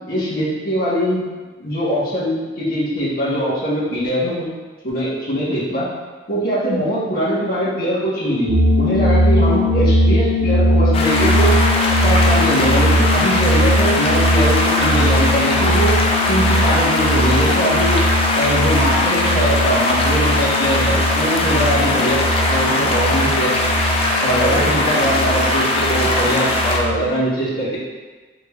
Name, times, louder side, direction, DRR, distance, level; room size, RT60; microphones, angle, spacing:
voice 1, 0.1-1.3 1.6-4.5 4.8-5.9 6.3-11.6 12.0-16.0 16.3-18.0 18.3-23.7 24.2-27.8, equal, 55° left, -9 dB, 1.2 m, -21 dB
sound 1, 8.5-27.2, equal, 90° right, 0.4 m, -19 dB
sound 2, 10.9-26.8, left 2 dB, 35° left, 0.4 m, -20 dB
3.7 x 3.3 x 2.4 m, 1.3 s
head